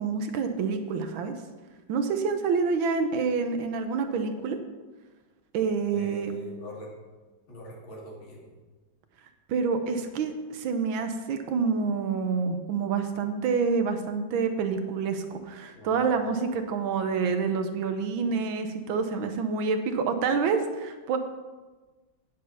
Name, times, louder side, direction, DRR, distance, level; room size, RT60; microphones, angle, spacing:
voice 1, 0.0-1.3 1.9-4.6 5.5-6.3 9.5-21.2, right 5 dB, 85° right, 7 dB, 1.6 m, -27 dB
voice 2, 5.9-6.9 7.5-8.4 15.8-16.1, equal, 90° left, -2 dB, 2.9 m, -42 dB
9.3 x 7.3 x 5.5 m, 1.3 s
omnidirectional pair, 2.1 m